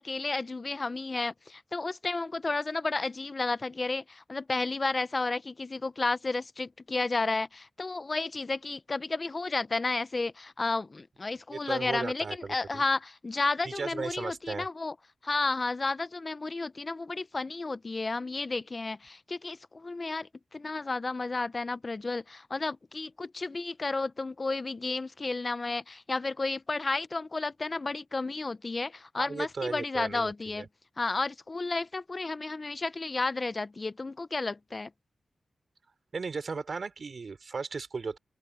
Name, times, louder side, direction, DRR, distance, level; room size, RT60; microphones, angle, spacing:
voice 1, 0.0-14.9 15.2-30.7 31.0-34.9, left 3 dB, 30° left, 0.5 m, -32 dB
voice 2, 11.5-12.8 13.6-14.7 29.2-30.7 36.1-38.2, right 4 dB, 45° right, 3.0 m, -36 dB
open air
wide cardioid pair, 135°, 0 cm